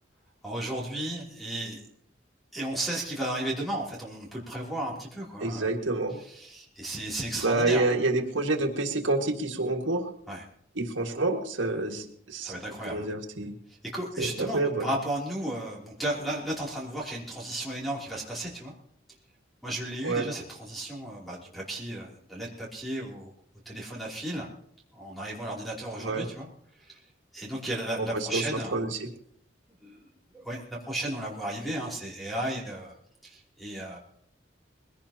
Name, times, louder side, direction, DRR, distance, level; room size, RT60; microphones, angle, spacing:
voice 1, 0.4-1.8 2.5-5.7 6.1-7.9 10.3-10.4 12.4-13.1 13.9-18.7 19.6-23.3 23.6-24.5 24.9-26.5 26.8-27.0 27.3-28.7 29.8-30.0 30.3-32.9 33.2-34.0, right 1 dB, ahead, -4 dB, 3.0 m, -34 dB
voice 2, 5.4-6.2 7.4-10.1 10.8-12.6 12.9-13.5 14.2-14.9 20.0-20.3 26.0-26.3 28.0-28.5 28.7-29.1, right 2 dB, 85° right, 3 dB, 1.8 m, -28 dB
21.5 x 16.5 x 2.9 m, 0.67 s
head